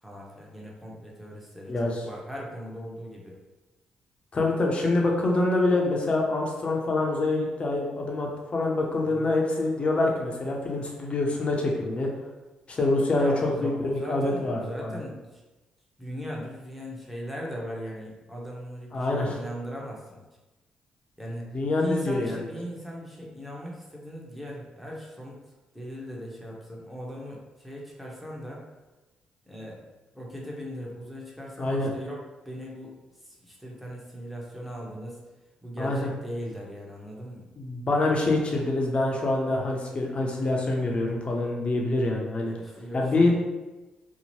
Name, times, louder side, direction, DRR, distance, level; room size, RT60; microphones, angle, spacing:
voice 1, 0.0-3.4 9.0-9.3 13.1-15.4 16.0-20.2 21.2-25.4 25.7-28.6 29.5-29.8 30.1-35.2 35.6-37.5 42.5-43.3, equal, 5° right, -3 dB, 0.9 m, -39 dB
voice 2, 1.7-2.0 4.3-12.1 12.7-15.0 18.9-19.4 21.5-22.5 31.6-31.9 35.8-36.1 37.6-42.5 42.9-43.3, left 2 dB, 45° left, 0 dB, 0.7 m, -26 dB
2.8 x 2.1 x 3.0 m, 1.1 s
supercardioid pair, 55°, 3 cm